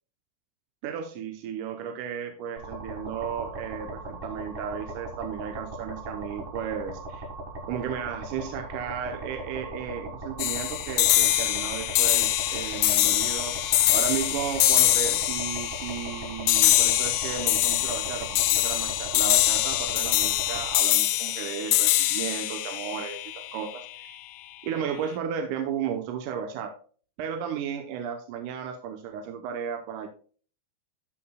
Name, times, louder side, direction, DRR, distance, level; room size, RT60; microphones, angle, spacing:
voice 1, 0.8-7.3 7.7-24.2 24.6-26.7 27.2-30.1, right 8 dB, 85° right, 5 dB, 2.3 m, -34 dB
sound 1, 2.6-20.7, right 2 dB, 30° right, 1.0 m, -39 dB
sound 2, 10.4-23.9, left 14 dB, 80° left, 1.5 m, -24 dB
13.0 x 5.9 x 2.2 m, 0.41 s
omnidirectional pair, 3.7 m